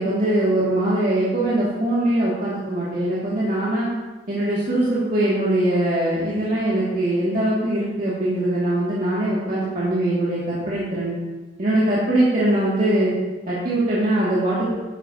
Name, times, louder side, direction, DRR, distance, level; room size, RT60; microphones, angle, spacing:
voice 1, 0.0-3.9 4.3-11.2 11.6-13.1 13.5-14.8, right 1 dB, 50° right, -9 dB, 2.3 m, -22 dB
11.5 x 10.5 x 2.9 m, 1.2 s
head